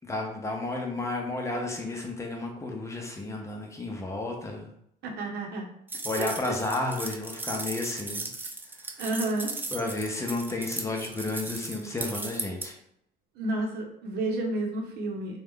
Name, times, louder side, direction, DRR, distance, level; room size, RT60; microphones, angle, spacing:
voice 1, 0.0-4.7 6.0-8.3 9.7-12.7, left 2 dB, 15° left, 1 dB, 0.7 m, -32 dB
voice 2, 5.0-5.7 6.2-6.6 9.0-9.5 13.3-15.4, right 2 dB, 75° right, 1 dB, 0.8 m, -31 dB
sound 1, 5.9-12.7, right 2 dB, 10° right, 0.4 m, -37 dB
3.0 x 2.3 x 3.6 m, 0.73 s
cardioid pair, 110°, 17 cm